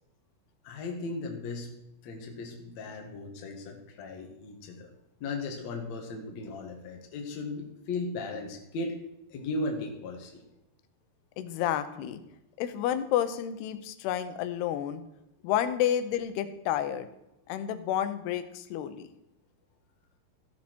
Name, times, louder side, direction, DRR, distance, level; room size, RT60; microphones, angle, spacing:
voice 1, 0.6-1.7 2.0-4.9 5.2-9.0 9.3-10.4, left 2 dB, 55° left, 2 dB, 2.4 m, -36 dB
voice 2, 11.4-12.2 12.6-15.0 15.4-17.1 17.5-19.1, left 10 dB, 85° left, 11 dB, 2.8 m, -30 dB
15.0 x 7.4 x 4.5 m, 0.87 s
omnidirectional pair, 4.6 m